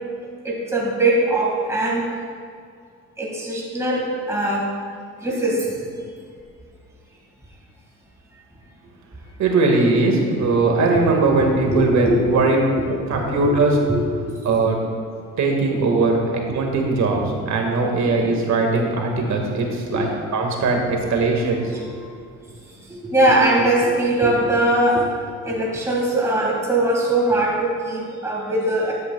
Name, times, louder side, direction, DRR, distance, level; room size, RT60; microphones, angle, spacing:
voice 1, 0.4-2.1 3.2-4.7 5.2-5.7 10.4-10.5 11.4-12.2 12.8-12.9 13.1-13.6 13.9-14.4 19.8-20.0 21.2-21.3 22.9-25.1 25.4-28.9, right 1 dB, 10° right, -4 dB, 1.9 m, -21 dB
voice 2, 9.4-12.6 13.1-13.8 14.4-14.8 15.4-21.6 21.9-22.0, right 3 dB, 65° right, 1 dB, 1.8 m, -20 dB
13.5 x 9.5 x 2.3 m, 2.2 s
cardioid pair, 90°, 30 cm